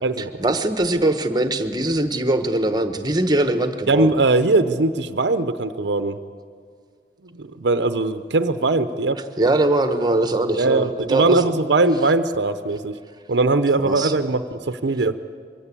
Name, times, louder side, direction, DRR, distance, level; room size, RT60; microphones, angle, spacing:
voice 1, 0.2-4.2 9.4-11.5 13.8-14.1, right 1 dB, 20° right, 8 dB, 1.1 m, -21 dB
voice 2, 3.9-6.2 7.4-9.2 10.6-13.0 13.3-15.1, right 3 dB, 75° right, 11 dB, 0.7 m, -20 dB
23.0 x 16.5 x 8.4 m, 2.2 s
head